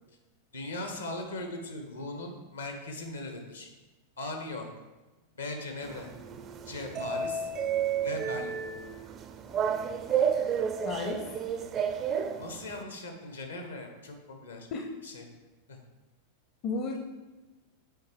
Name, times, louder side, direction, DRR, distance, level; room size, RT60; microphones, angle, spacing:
voice 1, 0.5-3.7 4.2-4.7 5.3-6.1 6.7-7.5 8.0-8.6 12.4-14.7 15.0-15.2 15.7-15.8, left 2 dB, 75° left, 4 dB, 1.0 m, -39 dB
sound 1, 5.8-12.8, right 7 dB, 30° right, 0.4 m, -31 dB
voice 2, 10.8-11.2 14.7-14.9 16.6-17.0, left 4 dB, 35° left, 2 dB, 0.6 m, -32 dB
8.1 x 4.6 x 3.3 m, 1.1 s
figure-of-eight pair, 90°, 0 cm